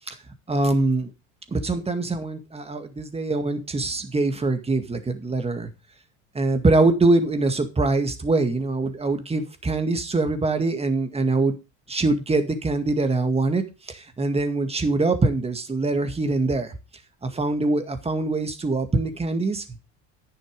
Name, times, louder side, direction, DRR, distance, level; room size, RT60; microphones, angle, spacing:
voice 1, 0.5-1.1 1.5-5.7 6.3-11.6 11.9-16.7 17.2-19.6, right 2 dB, 15° right, 8 dB, 2.0 m, -23 dB
10.0 x 6.7 x 5.2 m, 0.29 s
supercardioid pair, 110°, 37 cm